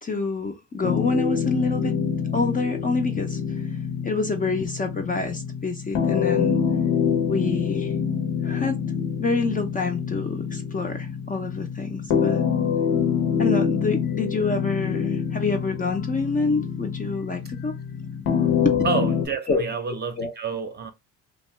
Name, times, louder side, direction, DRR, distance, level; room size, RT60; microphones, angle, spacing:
voice 1, 0.0-1.9 2.3-3.4 4.0-6.5 7.2-7.9 8.4-8.8 9.2-12.4 13.4-17.7 18.6-18.8 19.5-19.6 20.2-20.3, left 3 dB, 25° left, 0.5 m, -27 dB
sound 1, 0.8-19.3, left 7 dB, 70° left, 0.8 m, -26 dB
voice 2, 18.8-20.9, right 5 dB, 30° right, 0.6 m, -29 dB
2.6 x 2.1 x 3.1 m
supercardioid pair, 85°, 35 cm